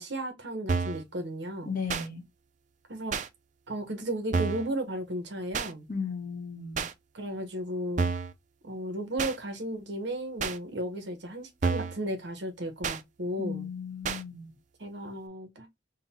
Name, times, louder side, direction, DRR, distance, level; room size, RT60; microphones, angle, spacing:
voice 1, 0.0-1.7 2.9-3.2 3.7-5.9 7.1-8.1 8.6-13.7 14.8-15.7, right 1 dB, 65° right, 1.0 m, -34 dB
sound 1, 0.7-1.0 1.9-2.1 3.1-3.3 4.3-4.7 5.5-5.7 6.7-6.9 8.0-8.3 9.2-9.4 10.4-10.6 11.6-12.0 12.8-13.0 14.0-14.2, right 4 dB, 40° right, 0.4 m, -29 dB
voice 2, 1.7-2.2 5.9-6.9 13.4-14.5, left 5 dB, 45° left, 0.9 m, -35 dB
3.8 x 2.2 x 4.1 m
head